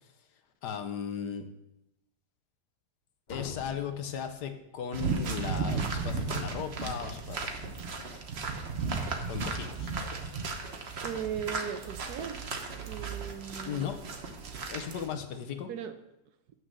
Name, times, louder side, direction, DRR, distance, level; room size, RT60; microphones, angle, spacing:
voice 1, 0.6-1.5 3.3-8.0 9.3-9.9 13.6-14.0 14.7-15.7, left 7 dB, 75° left, 7 dB, 1.4 m, -37 dB
sound 1, 3.3-5.1, left 5 dB, 35° left, 0.7 m, -46 dB
sound 2, 4.9-15.1, right 4 dB, 45° right, 1.0 m, -35 dB
voice 2, 11.0-12.5 12.8-14.0 15.7-16.0, right 8 dB, 70° right, 9 dB, 1.1 m, -38 dB
8.2 x 6.2 x 6.3 m, 0.88 s
omnidirectional pair, 1.8 m